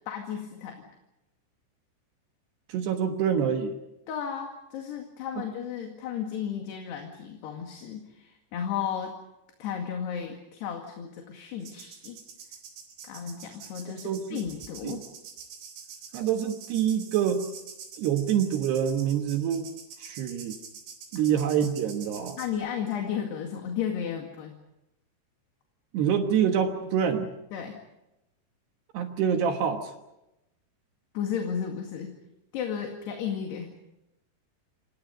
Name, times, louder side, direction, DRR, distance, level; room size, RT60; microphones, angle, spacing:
voice 1, 0.1-0.9 4.1-9.2 9.6-12.2 13.0-15.0 22.4-24.6 27.5-27.8 31.1-32.1 32.5-33.7, left 8 dB, 60° left, 2 dB, 3.9 m, -34 dB
voice 2, 2.7-3.7 14.0-14.4 14.8-15.0 16.1-17.5 18.0-19.7 20.0-20.6 21.1-22.4 25.9-27.3 28.9-29.9, right 8 dB, 65° right, 5 dB, 3.1 m, -26 dB
sound 1, 11.6-22.5, right 6 dB, 90° right, 6.4 m, -46 dB
28.5 x 27.0 x 5.4 m, 0.91 s
omnidirectional pair, 5.8 m